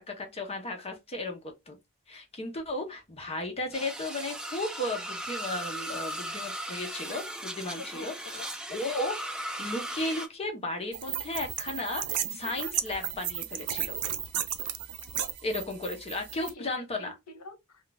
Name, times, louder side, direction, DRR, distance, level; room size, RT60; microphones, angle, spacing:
voice 1, 0.0-1.4 1.7-1.8 2.1-14.0 15.4-17.1, left 2 dB, 25° left, 0.7 m, -35 dB
sound 1, 3.7-10.3, right 1 dB, 5° right, 0.4 m, -37 dB
voice 2, 7.8-8.5 15.0-15.3 16.4-17.9, left 4 dB, 85° left, 0.7 m, -46 dB
sound 2, 10.9-16.5, right 10 dB, 80° right, 0.5 m, -34 dB
2.3 x 2.3 x 3.9 m
head